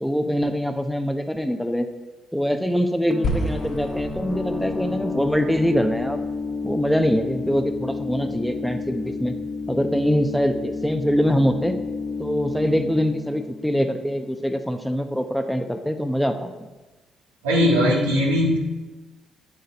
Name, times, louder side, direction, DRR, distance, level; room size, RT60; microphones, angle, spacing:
voice 1, 0.0-1.9 2.3-6.2 6.6-9.3 9.7-11.8 12.2-16.5, equal, ahead, 7 dB, 0.9 m, -23 dB
sound 1, 3.1-14.6, left 4 dB, 20° left, 1.2 m, -31 dB
sound 2, 3.2-7.6, left 1 dB, 60° left, 1.5 m, -32 dB
voice 2, 17.4-18.6, equal, 85° right, -3 dB, 1.6 m, -19 dB
9.2 x 6.7 x 4.1 m, 1.1 s
hypercardioid pair, 45°, 0 cm